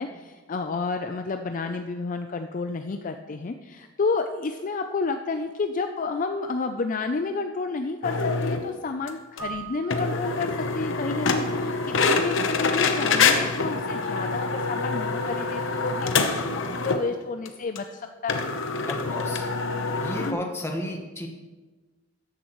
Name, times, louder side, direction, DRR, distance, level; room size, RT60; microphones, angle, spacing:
voice 1, 0.0-18.5 20.1-20.4, left 4 dB, 40° left, 6 dB, 0.4 m, -30 dB
sound 1, 8.0-8.6 9.1-9.2 9.4-9.5 9.9-17.1 17.5-17.6 17.8-17.9 18.3-20.3, left 4 dB, 65° left, 0.9 m, -25 dB
Keyboard (musical), 9.4-11.2, right 7 dB, 15° right, 1.8 m, -41 dB
voice 2, 18.9-19.4 20.0-21.3, left 1 dB, 15° left, 1 dB, 1.3 m, -33 dB
13.5 x 10.5 x 3.1 m, 1.3 s
head